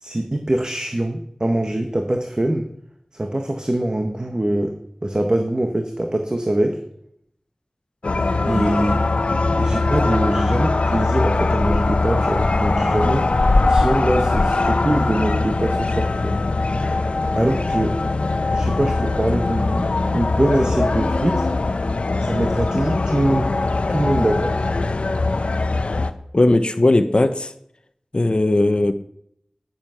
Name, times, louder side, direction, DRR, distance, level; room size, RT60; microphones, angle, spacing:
voice 1, 0.0-2.7 3.1-4.7 5.0-6.8 8.5-9.1 9.6-13.3 13.7-16.4 17.3-18.0 18.5-21.5 22.2-23.5 23.9-24.7, right 1 dB, 40° right, 4 dB, 1.7 m, -23 dB
sound 1, 8.0-26.1, left 3 dB, 85° left, 0.9 m, -21 dB
voice 2, 26.3-27.5 28.1-28.9, left 2 dB, 50° left, 9 dB, 1.0 m, -17 dB
15.0 x 11.0 x 6.0 m, 0.73 s
wide cardioid pair, 40°, 2 cm